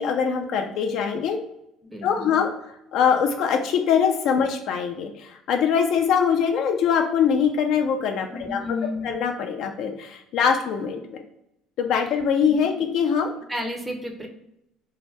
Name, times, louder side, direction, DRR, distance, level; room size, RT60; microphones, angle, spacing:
voice 1, 0.0-1.4 2.0-2.5 2.9-8.8 9.0-11.0 11.8-13.3, left 7 dB, 65° left, 4 dB, 0.3 m, -23 dB
voice 2, 1.8-2.4 8.3-9.1 12.5-12.7 13.5-14.3, left 2 dB, 5° right, 1 dB, 0.6 m, -32 dB
2.6 x 2.1 x 3.2 m, 0.84 s
supercardioid pair, 80°, 0 cm